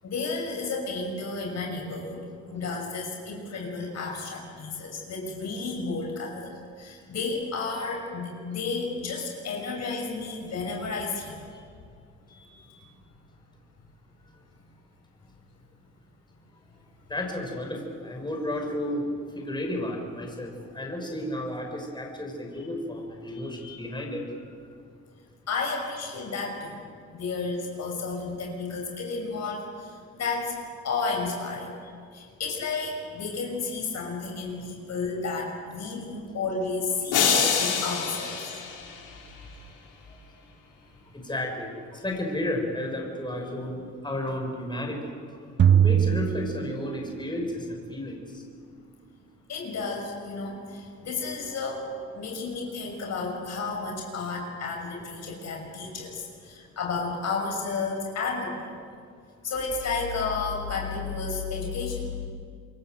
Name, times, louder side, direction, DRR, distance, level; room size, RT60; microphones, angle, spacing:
voice 1, 0.0-11.5 12.3-12.8 25.5-26.8 27.1-30.6 30.8-38.6 49.5-51.9 52.1-58.7 59.4-62.1, left 4 dB, 60° left, 1 dB, 6.4 m, -32 dB
voice 2, 17.1-24.8 34.6-34.7 40.1-40.2 41.0-48.4, left 1 dB, 15° left, 1 dB, 6.4 m, -33 dB
sound 1, 37.1-39.4, left 7 dB, 85° left, 4.3 m, -26 dB
sound 2, 45.6-47.4, right 9 dB, 40° right, 0.6 m, -22 dB
27.5 x 23.0 x 8.0 m, 2.2 s
cardioid pair, 90°, 30 cm